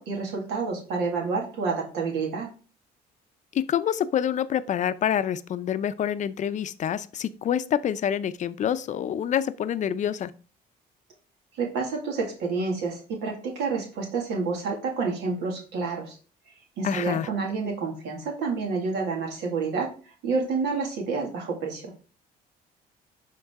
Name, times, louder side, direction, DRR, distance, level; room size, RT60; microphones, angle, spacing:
voice 1, 0.0-2.5 11.5-16.2 16.8-21.9, right 4 dB, 85° right, 0 dB, 2.1 m, -29 dB
voice 2, 3.5-10.3 16.8-17.3, left 9 dB, 45° left, 13 dB, 0.5 m, -27 dB
11.0 x 3.8 x 3.6 m, 0.38 s
cardioid pair, 110°, 17 cm